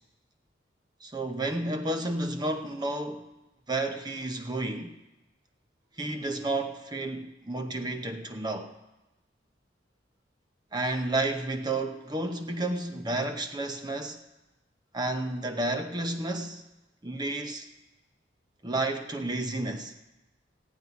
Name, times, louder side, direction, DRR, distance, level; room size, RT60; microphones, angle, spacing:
voice 1, 1.0-3.3 3.7-4.9 6.0-8.7 10.7-14.2 14.9-16.6 17.0-17.7 18.6-19.9, right 2 dB, 20° right, 0.8 m, -31 dB
15.0 x 5.6 x 9.4 m
head